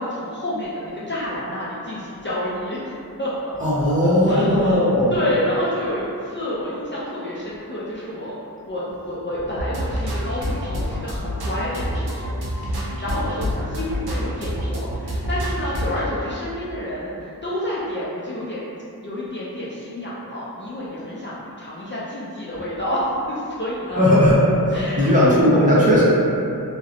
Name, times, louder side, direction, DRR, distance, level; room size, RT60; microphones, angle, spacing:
voice 1, 0.0-2.9 3.2-3.5 3.8-8.3 8.7-12.4 12.7-18.6 19.0-24.1 24.7-25.3, left 1 dB, 30° left, -9 dB, 0.4 m, -29 dB
voice 2, 3.6-5.1 23.9-24.4 25.0-26.0, left 1 dB, 20° right, -10 dB, 0.7 m, -16 dB
sound 1, 9.6-16.1, equal, 80° right, 0.5 m, -27 dB
2.7 x 2.0 x 2.5 m, 2.6 s
wide cardioid pair, 45°, 37 cm